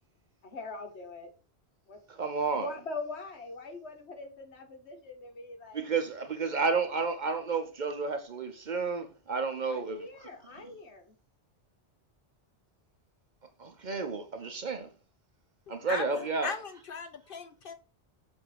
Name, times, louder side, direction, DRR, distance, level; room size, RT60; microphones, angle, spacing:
voice 1, 0.4-1.3 1.9-2.0 2.5-5.8 9.7-11.1, left 3 dB, 75° left, 1.5 m, -42 dB
voice 2, 2.1-2.7 5.7-10.1 13.6-14.9 15.7-16.5, right 4 dB, 50° right, 0.8 m, -31 dB
voice 3, 15.7-17.7, left 5 dB, 60° left, 0.7 m, -38 dB
7.1 x 2.7 x 5.7 m
omnidirectional pair, 1.1 m